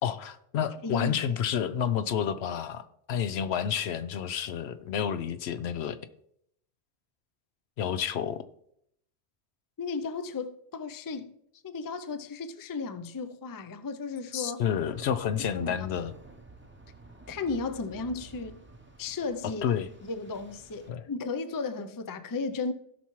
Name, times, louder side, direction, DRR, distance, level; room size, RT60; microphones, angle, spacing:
voice 1, 0.0-6.0 7.8-8.4 14.3-16.1 19.6-19.9 20.9-21.1, left 8 dB, 75° left, 0.9 m, -30 dB
voice 2, 0.8-1.4 9.8-11.3 11.6-14.6 15.5-15.9 17.3-18.6 19.0-19.6 20.0-22.7, left 4 dB, 30° left, 0.4 m, -34 dB
sound 1, 14.7-20.9, right 3 dB, 10° right, 0.7 m, -51 dB
17.0 x 5.7 x 3.1 m
omnidirectional pair, 1.1 m